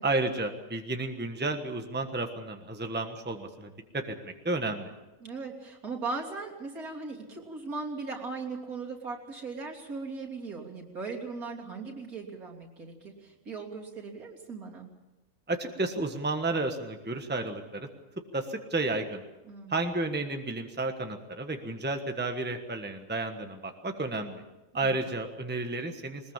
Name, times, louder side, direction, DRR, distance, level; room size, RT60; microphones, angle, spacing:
voice 1, 0.0-4.9 15.5-17.9 18.3-19.2 19.7-24.4 24.7-26.3, right 2 dB, 5° right, 5 dB, 1.3 m, -32 dB
voice 2, 5.2-14.9 19.4-19.9 24.8-25.0, right 4 dB, 70° right, -1 dB, 3.5 m, -38 dB
21.5 x 20.5 x 7.4 m, 1.1 s
omnidirectional pair, 1.6 m